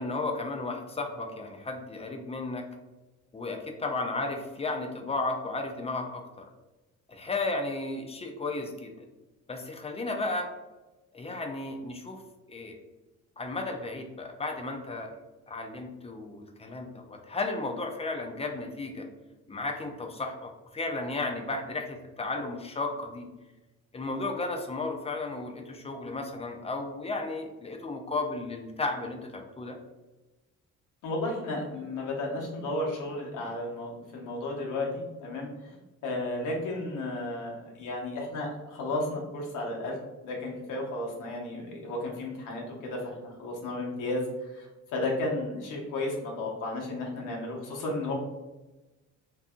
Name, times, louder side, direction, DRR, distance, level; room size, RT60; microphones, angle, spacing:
voice 1, 0.0-2.6 3.3-6.5 7.1-8.9 9.5-10.5 11.1-12.2 12.5-12.7 13.4-15.1 15.5-19.1 19.5-23.3 23.9-29.8, left 3 dB, 20° left, 3 dB, 0.4 m, -34 dB
voice 2, 31.0-35.7 36.0-48.1, left 2 dB, 85° left, -1 dB, 0.8 m, -33 dB
2.6 x 2.6 x 2.3 m, 1.1 s
cardioid pair, 90°, 30 cm